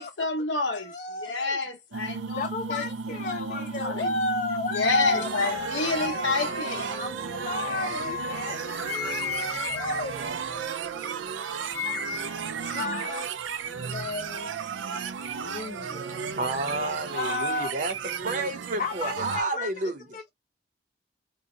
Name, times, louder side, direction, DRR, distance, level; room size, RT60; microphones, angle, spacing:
voice 1, 0.0-2.8 3.2-4.2 4.7-6.9, left 3 dB, 80° left, 1.0 m, -29 dB
voice 2, 0.7-1.6 2.0-6.3 6.8-10.3 12.2-13.3 13.6-14.6 15.3-16.2 17.0-17.7 18.8-20.3, left 3 dB, 45° left, 0.4 m, -33 dB
sound 1, 1.9-19.4, right 6 dB, 90° right, 0.4 m, -34 dB
sound 2, 5.8-11.1 11.4-12.5, left 6 dB, 20° left, 0.8 m, -36 dB
voice 3, 16.4-17.9 18.2-20.0, right 2 dB, 45° right, 0.7 m, -30 dB
2.7 x 2.1 x 3.8 m
head